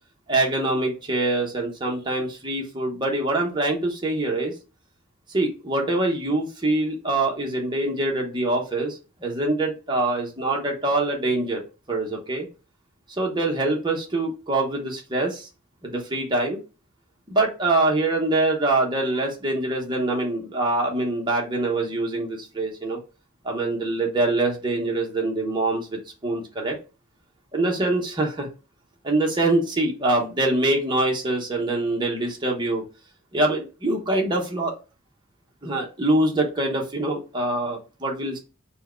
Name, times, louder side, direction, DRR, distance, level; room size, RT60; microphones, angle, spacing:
voice 1, 0.3-4.5 5.3-11.6 11.9-12.5 13.2-15.5 15.8-16.6 17.3-23.0 23.4-26.8 27.5-28.5 29.0-32.8 33.3-34.7 35.6-38.4, right 2 dB, 25° right, 0 dB, 1.0 m, -24 dB
4.4 x 2.3 x 4.3 m, 0.32 s
head